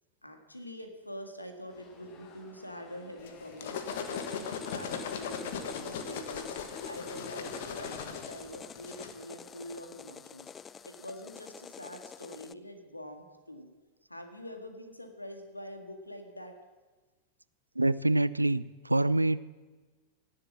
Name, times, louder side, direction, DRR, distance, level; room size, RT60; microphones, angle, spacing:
voice 1, 0.2-3.8 4.1-6.6 6.8-10.5 10.8-13.7 14.1-16.5, equal, 85° left, 5 dB, 1.9 m, -45 dB
sound 1, 1.7-8.5, left 4 dB, 40° left, 5.5 m, -55 dB
sound 2, 3.3-9.1, left 6 dB, 55° left, 1.4 m, -38 dB
sound 3, 3.9-12.5, left 7 dB, 20° left, 0.4 m, -47 dB
voice 2, 17.8-19.4, right 2 dB, 85° right, 18 dB, 0.4 m, -26 dB
17.5 x 7.6 x 7.4 m, 1.3 s
figure-of-eight pair, 90°, 0 cm